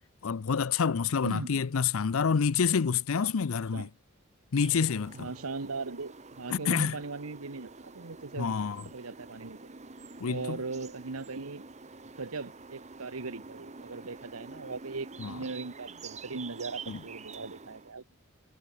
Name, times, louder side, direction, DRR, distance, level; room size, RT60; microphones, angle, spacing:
voice 1, 0.2-3.9 4.5-5.3 6.5-6.9 8.4-8.8 10.2-10.6 15.2-15.4 16.9-17.0, left 6 dB, 70° left, 0.5 m, -28 dB
voice 2, 1.2-1.6 3.2-3.3 3.7-3.9 5.1-8.5 8.9-9.6 10.2-11.6 12.0-18.0, right 3 dB, 85° right, 1.2 m, -39 dB
sound 1, 4.6-17.9, right 4 dB, 35° right, 1.3 m, -47 dB
head